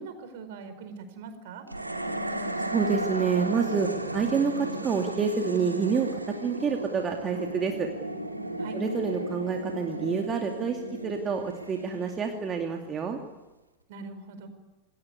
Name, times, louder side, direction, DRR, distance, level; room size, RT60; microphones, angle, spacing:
voice 1, 0.0-1.7 8.6-8.8 13.9-14.5, right 5 dB, 50° right, 9 dB, 4.9 m, -41 dB
sound 1, 1.7-13.0, right 1 dB, 85° right, 2.6 m, -35 dB
voice 2, 2.7-7.9 8.7-13.2, right 6 dB, 25° right, 3 dB, 2.5 m, -28 dB
28.0 x 20.5 x 9.7 m, 1.1 s
figure-of-eight pair, 90°, 0 cm